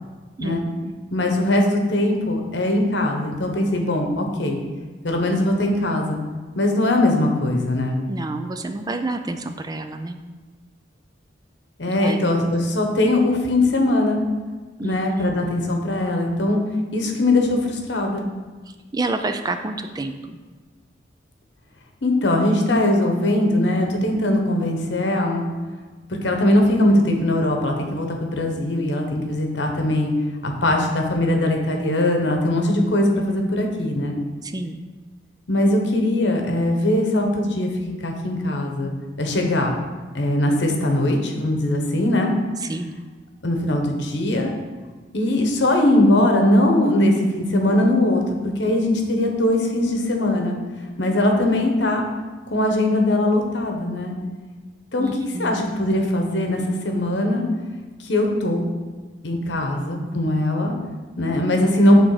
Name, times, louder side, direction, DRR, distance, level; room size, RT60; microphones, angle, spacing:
voice 1, 1.1-4.6 5.0-6.2 6.5-8.0 11.8-14.2 14.8-16.6 16.9-18.2 22.0-25.4 26.1-30.1 30.4-34.2 35.5-39.8 40.1-42.3 43.4-44.5 45.1-50.6 51.0-52.1 52.5-54.1 54.9-55.1 55.4-57.4 58.0-58.7 59.2-60.7 61.2-62.0, left 1 dB, 65° left, 2 dB, 1.1 m, -20 dB
voice 2, 8.1-10.2 11.9-12.2 14.8-15.2 18.7-20.4 34.4-34.8 42.6-43.0 55.0-55.6, right 2 dB, 20° right, 7 dB, 0.4 m, -29 dB
8.2 x 3.7 x 4.9 m, 1.3 s
head